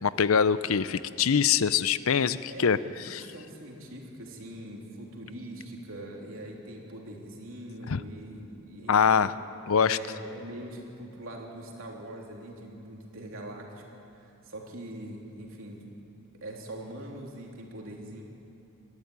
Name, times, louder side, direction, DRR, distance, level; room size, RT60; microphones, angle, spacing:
voice 1, 0.0-2.8 3.1-3.2 7.9-8.0 8.9-9.3 9.7-10.0, left 7 dB, 70° left, 15 dB, 0.6 m, -23 dB
voice 2, 2.5-2.9 3.3-9.3 9.8-13.8 14.2-15.9 16.4-18.2, right 1 dB, 65° right, -1 dB, 3.4 m, -42 dB
22.0 x 14.0 x 9.7 m, 2.7 s
head